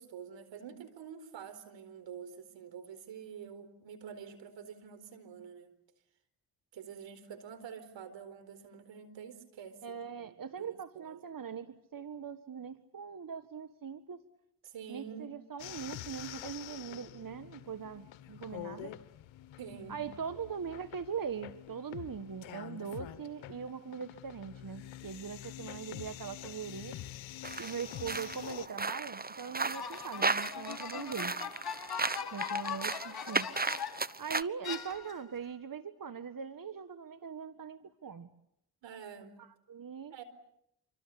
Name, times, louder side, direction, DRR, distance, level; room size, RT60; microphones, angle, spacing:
voice 1, 0.0-5.8 6.7-11.2 14.6-15.4 19.6-20.0 38.8-39.3 40.1-40.2, right 7 dB, 80° right, 10 dB, 4.4 m, -47 dB
voice 2, 9.8-14.2 14.9-18.9 19.9-27.0 27.6-31.3 32.3-33.5 34.2-38.3 39.4-40.1, right 6 dB, 50° right, 10 dB, 1.8 m, -41 dB
sound 1, 15.6-28.7, left 13 dB, 85° left, 1.4 m, -47 dB
sound 2, 27.4-34.4, right 3 dB, 20° right, 1.2 m, -35 dB
sound 3, 29.7-34.1 34.6-35.4, left 7 dB, 55° left, 3.1 m, -40 dB
28.0 x 25.0 x 8.5 m, 0.77 s
supercardioid pair, 40°, 44 cm